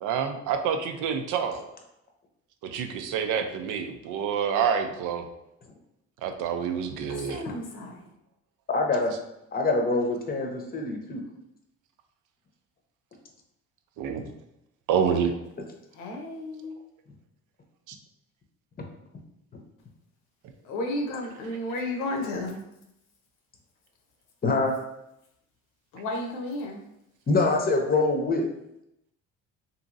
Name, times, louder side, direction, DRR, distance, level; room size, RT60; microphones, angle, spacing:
voice 1, 0.0-1.6 2.6-5.3 6.2-7.4 14.0-14.2 14.9-15.3 17.9-18.0, right 7 dB, 75° right, 6 dB, 0.5 m, -27 dB
voice 2, 7.1-8.0 15.9-16.7 20.6-22.6 25.9-26.9, left 1 dB, 80° left, 2 dB, 0.8 m, -33 dB
voice 3, 8.7-9.1 9.5-11.2 24.4-24.8 27.3-28.5, left 3 dB, 30° left, 2 dB, 0.7 m, -24 dB
2.9 x 2.6 x 2.5 m, 0.82 s
supercardioid pair, 85°, 31 cm